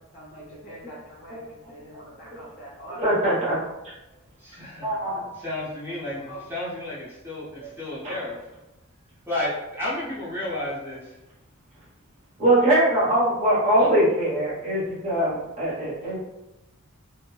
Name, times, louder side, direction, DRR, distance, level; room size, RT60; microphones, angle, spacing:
voice 1, 0.0-1.4 1.7-3.2, right 1 dB, 45° left, -7 dB, 0.5 m, -43 dB
voice 2, 3.0-3.6 3.8-3.9 4.8-5.2 6.3-6.4 7.6-7.7 8.0-8.2 12.4-16.2, right 1 dB, 30° right, -9 dB, 1.0 m, -22 dB
voice 3, 4.4-4.9 5.4-8.4 9.3-11.1 13.8-13.9 16.1-16.2, left 1 dB, 10° right, -9 dB, 0.6 m, -32 dB
2.8 x 2.1 x 2.2 m, 0.96 s
head